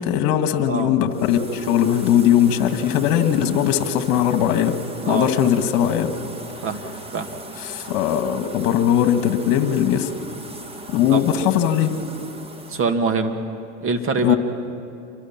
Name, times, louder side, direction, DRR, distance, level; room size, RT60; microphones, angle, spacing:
voice 1, 0.0-4.8 5.1-6.1 7.6-10.1 10.9-11.9 14.2-14.4, left 10 dB, 50° left, 8 dB, 2.0 m, -19 dB
sound 1, 1.1-12.9, right 2 dB, 15° right, 1.4 m, -38 dB
voice 2, 12.7-13.3 13.8-14.4, right 4 dB, 30° right, 6 dB, 2.1 m, -23 dB
28.0 x 23.0 x 6.0 m, 2.7 s
hypercardioid pair, 110°, 43 cm